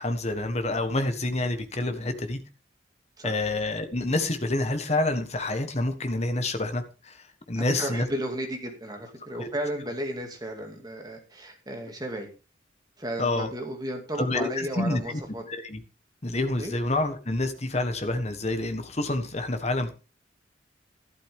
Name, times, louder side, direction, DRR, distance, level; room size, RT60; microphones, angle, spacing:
voice 1, 0.0-2.4 3.2-8.0 9.4-9.5 13.2-13.5 14.2-15.0 15.5-15.8 16.2-19.9, left 2 dB, 35° left, 8 dB, 1.4 m, -28 dB
voice 2, 7.6-12.3 13.0-15.4 16.6-16.8, right 1 dB, 20° right, 3 dB, 2.4 m, -34 dB
12.0 x 11.5 x 3.6 m, 0.33 s
head